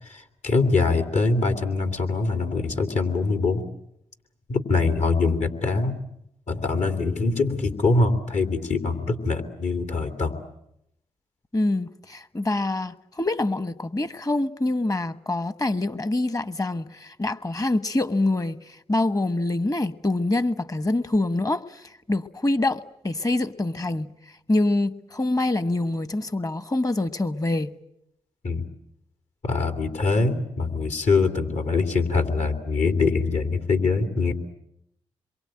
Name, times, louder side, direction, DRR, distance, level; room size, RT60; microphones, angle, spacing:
voice 1, 0.1-3.6 4.5-6.0 6.5-10.3 28.4-28.6 29.4-34.3, left 3 dB, 65° left, 2.9 m, -23 dB
voice 2, 11.5-24.1 24.5-27.7, left 2 dB, 30° left, 1.3 m, -25 dB
27.0 x 23.0 x 9.0 m
supercardioid pair, 45°, 13 cm